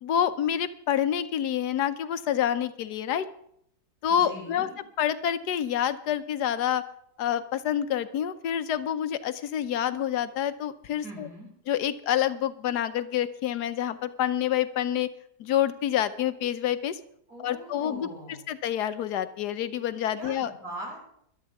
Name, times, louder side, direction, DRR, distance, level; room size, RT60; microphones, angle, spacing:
voice 1, 0.0-3.3 4.0-4.7 5.0-6.8 7.2-11.3 11.7-15.1 15.4-17.0 17.4-18.1 18.5-20.5, left 10 dB, 80° left, 12 dB, 1.3 m, -27 dB
voice 2, 4.1-4.8 11.0-11.5 17.3-18.5 20.2-21.0, right 1 dB, 70° right, -2 dB, 6.3 m, -41 dB
21.5 x 12.0 x 3.5 m, 0.71 s
omnidirectional pair, 1.7 m